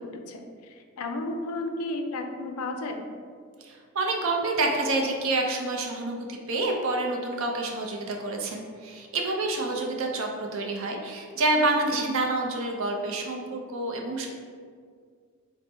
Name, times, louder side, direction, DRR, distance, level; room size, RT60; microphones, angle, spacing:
voice 1, 0.0-3.0 11.8-12.1, left 2 dB, 75° left, 5 dB, 0.4 m, -33 dB
voice 2, 3.6-14.3, right 2 dB, 60° right, 1 dB, 0.5 m, -28 dB
4.3 x 2.1 x 3.3 m, 2.1 s
head